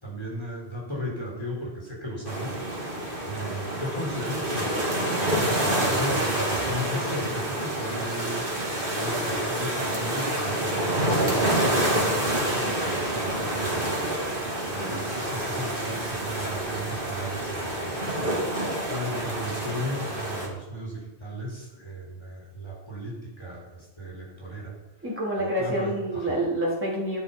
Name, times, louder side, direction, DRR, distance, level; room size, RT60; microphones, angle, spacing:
voice 1, 0.0-2.6 3.2-4.8 5.3-8.4 8.9-14.1 14.7-18.3 18.8-24.7 25.4-26.4, equal, 25° left, -3 dB, 4.0 m, -36 dB
sound 1, 2.2-20.5, right 1 dB, 50° right, 2.9 m, -27 dB
voice 2, 14.8-15.1 25.0-27.2, right 1 dB, 10° right, -6 dB, 3.7 m, -28 dB
11.0 x 10.5 x 5.6 m, 0.99 s
omnidirectional pair, 1.1 m